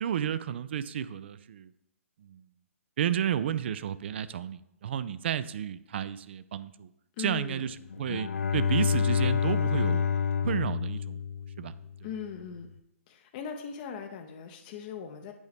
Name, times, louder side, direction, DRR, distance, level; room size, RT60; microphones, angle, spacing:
voice 1, 0.0-1.7 2.2-2.4 3.0-6.9 7.2-10.1 10.4-11.3 11.6-11.7, right 9 dB, 50° right, 15 dB, 0.3 m, -32 dB
voice 2, 7.2-7.7 12.0-12.7 13.1-15.3, left 7 dB, 35° left, 5 dB, 0.6 m, -39 dB
Bowed string instrument, 7.9-12.0, left 6 dB, 75° left, 0.4 m, -28 dB
8.2 x 4.6 x 3.4 m, 0.80 s
figure-of-eight pair, 130°, 8 cm